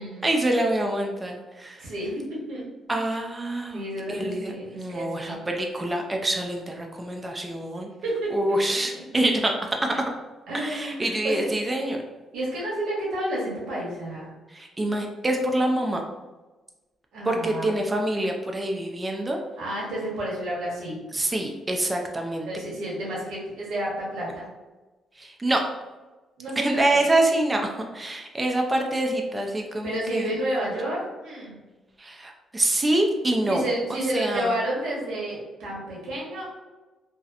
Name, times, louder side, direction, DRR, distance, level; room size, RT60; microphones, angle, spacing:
voice 1, 0.2-1.9 2.9-7.9 8.3-9.5 9.8-9.9 10.5-12.0 14.5-16.0 17.3-19.4 21.1-22.5 25.2-25.6 26.6-27.6 27.9-30.3 32.0-33.6 33.9-34.5, right 1 dB, 15° right, 2 dB, 0.3 m, -26 dB
voice 2, 1.8-2.6 2.9-3.0 3.7-5.4 8.0-9.2 10.5-11.5 12.3-14.3 17.1-17.7 19.6-21.0 22.4-24.5 26.4-27.0 29.8-31.6 33.5-36.5, right 1 dB, 85° right, -5 dB, 1.0 m, -31 dB
2.7 x 2.0 x 2.4 m, 1.2 s
cardioid pair, 120°, 0 cm